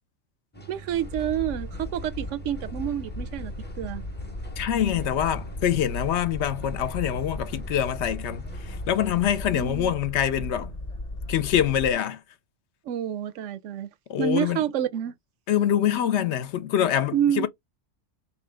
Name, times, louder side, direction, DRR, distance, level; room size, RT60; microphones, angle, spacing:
sound 1, 0.5-9.8, right 4 dB, 15° left, 0.5 m, -45 dB
voice 1, 0.7-3.5 3.8-4.0 9.5-9.9 12.9-13.9 14.2-15.1 17.1-17.5, right 10 dB, 85° right, 0.9 m, -28 dB
Boat Water vehicle, 0.9-11.9, left 2 dB, 35° left, 0.9 m, -36 dB
voice 2, 4.6-10.7 11.3-12.2 14.1-14.6 15.5-17.5, left 10 dB, 70° left, 0.8 m, -25 dB
3.7 x 3.0 x 3.3 m
omnidirectional pair, 1.2 m